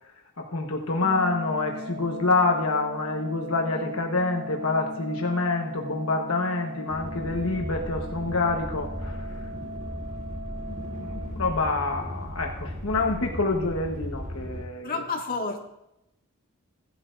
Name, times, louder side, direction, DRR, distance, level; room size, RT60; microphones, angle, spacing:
voice 1, 0.4-9.5 10.7-15.0, left 3 dB, 80° left, 2 dB, 1.2 m, -27 dB
Organ, 1.0-12.0, equal, 60° right, 1.5 m, -39 dB
sound 1, 6.9-14.7, equal, 35° right, 1.6 m, -36 dB
voice 2, 14.8-15.7, left 4 dB, 45° left, 1 dB, 1.9 m, -30 dB
17.0 x 11.5 x 2.6 m, 0.86 s
head